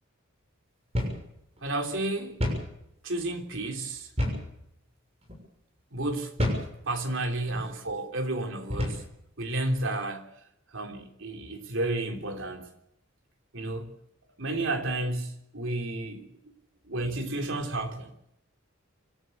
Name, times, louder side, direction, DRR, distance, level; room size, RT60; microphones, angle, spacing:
sound 1, 1.0-1.3 1.6-1.7 2.4-2.7 4.2-4.5 5.2-5.4 6.4-6.7 7.5-7.7 8.7-9.1, left 1 dB, 30° right, 6.7 m, -29 dB
voice 1, 1.6-2.4 3.0-4.1 5.9-6.4 6.9-9.0 9.4-10.3 10.7-12.7 13.5-13.9 14.4-16.3 16.9-18.1, right 2 dB, 65° right, 5 dB, 3.4 m, -31 dB
26.5 x 12.5 x 8.3 m, 0.75 s
head